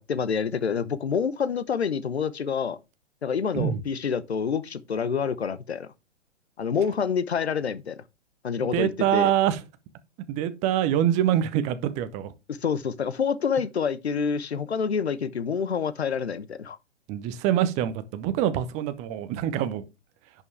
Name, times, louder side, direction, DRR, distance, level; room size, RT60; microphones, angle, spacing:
voice 1, 0.1-2.8 3.2-5.9 6.6-8.0 8.4-9.3 12.5-16.8, left 6 dB, 70° left, 0.9 m, -27 dB
voice 2, 8.6-9.6 10.3-12.3 17.1-19.8, right 11 dB, 20° right, 0.8 m, -25 dB
10.5 x 5.6 x 3.4 m
figure-of-eight pair, 115°, 34 cm